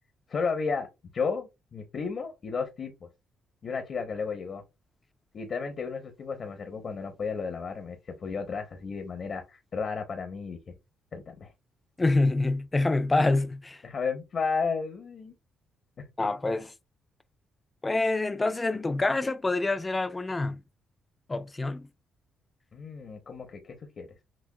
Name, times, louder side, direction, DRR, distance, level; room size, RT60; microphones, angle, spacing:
voice 1, 0.3-0.9 1.1-2.9 3.6-4.6 5.3-10.7 11.1-11.5 13.8-15.3 16.2-16.3 22.7-24.1, left 5 dB, 50° left, 0.8 m, -33 dB
voice 2, 12.0-13.8 16.2-16.7 17.8-20.6 21.3-21.9, left 2 dB, 20° left, 0.4 m, -26 dB
6.1 x 2.2 x 2.2 m
cardioid pair, 90°, 0 cm